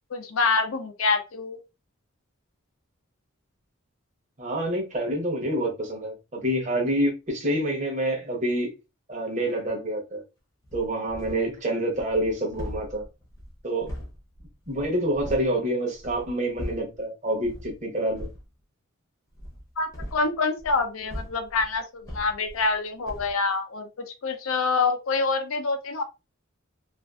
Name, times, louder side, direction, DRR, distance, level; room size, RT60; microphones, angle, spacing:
voice 1, 0.1-1.6 19.8-26.0, left 4 dB, 75° left, 0.5 m, -26 dB
voice 2, 4.4-8.7 9.1-10.2 10.7-13.0 13.6-13.9 14.7-18.3, right 1 dB, 35° right, 0.8 m, -27 dB
sound 1, 10.6-11.6 11.9-15.5 15.9-17.0 17.4-17.7 18.1-18.5 19.3-22.8 23.0-23.4, equal, 15° left, 0.7 m, -40 dB
2.5 x 2.4 x 2.3 m
head